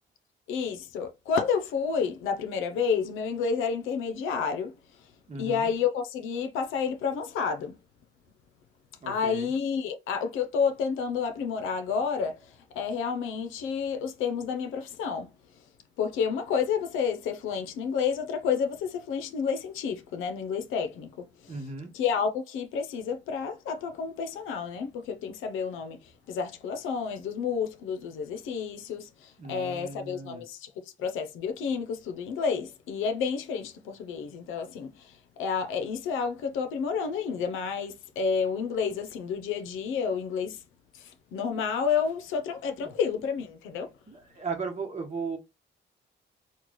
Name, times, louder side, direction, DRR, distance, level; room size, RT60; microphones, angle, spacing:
voice 1, 0.5-4.7 5.4-7.8 9.1-15.3 16.0-21.6 21.9-30.7 31.0-40.6 40.9-43.9, left 6 dB, 90° left, 0.7 m, -30 dB
voice 2, 5.3-5.7 9.0-9.5 21.5-21.9 29.4-30.4 42.8-42.9 44.1-45.4, right 4 dB, 35° right, 1.2 m, -36 dB
3.0 x 2.3 x 3.7 m
cardioid pair, 90°, 20 cm